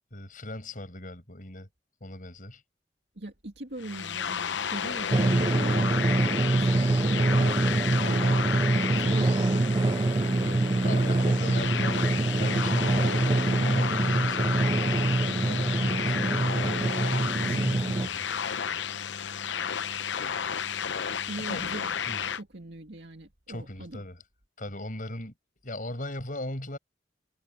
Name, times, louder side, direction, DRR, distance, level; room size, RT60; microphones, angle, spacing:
voice 1, 0.1-1.7 2.0-2.6 10.4-16.9 17.4-18.3 21.4-21.6 22.1-22.2 23.5-24.2 24.6-25.3 25.6-26.8, left 1 dB, 45° left, 7.0 m, -39 dB
voice 2, 3.2-7.2 8.9-9.7 15.7-16.1 17.4-18.0 21.3-22.0 22.3-24.0, right 2 dB, 65° right, 2.4 m, -41 dB
sound 1, 3.8-22.4, left 7 dB, 85° left, 0.7 m, -32 dB
Drum, 5.1-18.1, right 2 dB, 25° right, 0.4 m, -25 dB
head